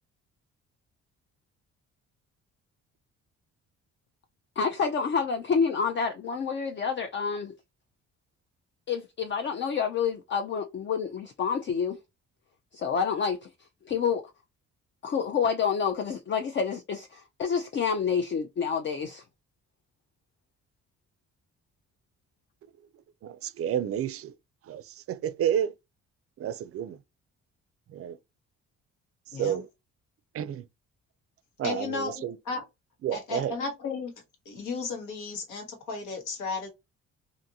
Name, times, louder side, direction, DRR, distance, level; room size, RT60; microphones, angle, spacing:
voice 1, 4.6-7.5 8.9-12.0 12.7-13.5 13.9-14.2 15.0-19.2, left 6 dB, 40° left, 0.4 m, -28 dB
voice 2, 23.2-24.3 24.6-25.7 26.4-27.0 27.9-28.2 29.3-29.7 30.3-30.6 31.6-32.4 33.0-33.6, right 9 dB, 50° right, 0.4 m, -30 dB
voice 3, 29.3-29.6 31.6-32.6 33.1-34.1 34.4-36.7, left 4 dB, 85° left, 1.3 m, -34 dB
2.6 x 2.5 x 2.7 m
cardioid pair, 90°, 30 cm